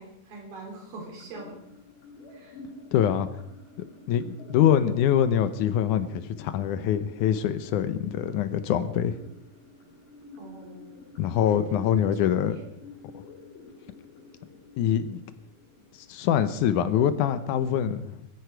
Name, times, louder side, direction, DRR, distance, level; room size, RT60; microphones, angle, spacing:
voice 1, 0.0-1.6 2.3-2.6 10.4-10.9 11.5-12.7, right 2 dB, 80° right, 0 dB, 5.5 m, -42 dB
sound 1, 1.2-17.2, left 3 dB, 90° left, 7.3 m, -50 dB
voice 2, 2.9-3.3 4.1-9.2 11.2-12.6 14.8-15.2 16.1-18.2, left 9 dB, 75° left, 12 dB, 2.0 m, -24 dB
20.0 x 15.0 x 4.6 m, 0.79 s
omnidirectional pair, 4.1 m